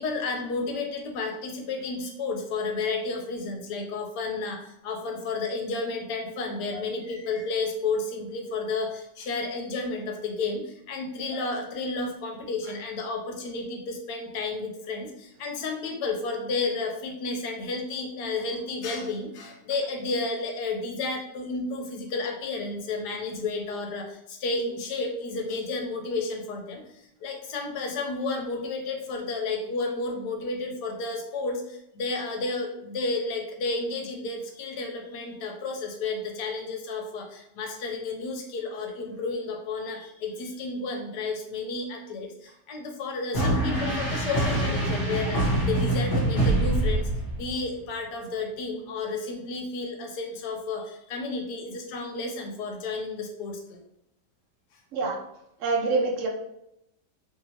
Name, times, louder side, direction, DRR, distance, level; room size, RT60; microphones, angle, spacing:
voice 1, 0.0-47.1 47.4-53.8 55.0-55.1, left 3 dB, 75° left, 2 dB, 1.1 m, -32 dB
sound 1, 43.3-47.6, right 1 dB, 50° left, 1.2 m, -25 dB
voice 2, 55.6-56.3, right 3 dB, 75° right, -1 dB, 0.7 m, -25 dB
2.9 x 2.7 x 2.7 m, 0.80 s
omnidirectional pair, 1.9 m